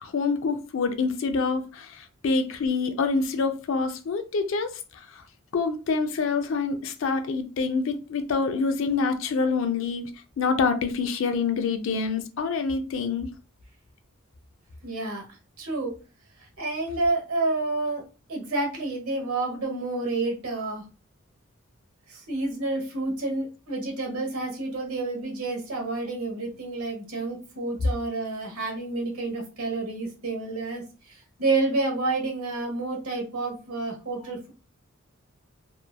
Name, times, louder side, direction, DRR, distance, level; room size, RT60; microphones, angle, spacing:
voice 1, 0.0-5.2 5.5-10.1 10.4-13.3, left 4 dB, 65° left, 0.4 m, -26 dB
voice 2, 14.8-15.2 15.6-15.9 16.6-18.0 18.3-20.8 22.1-34.5, right 2 dB, 90° right, 1.0 m, -29 dB
2.9 x 2.3 x 2.2 m
head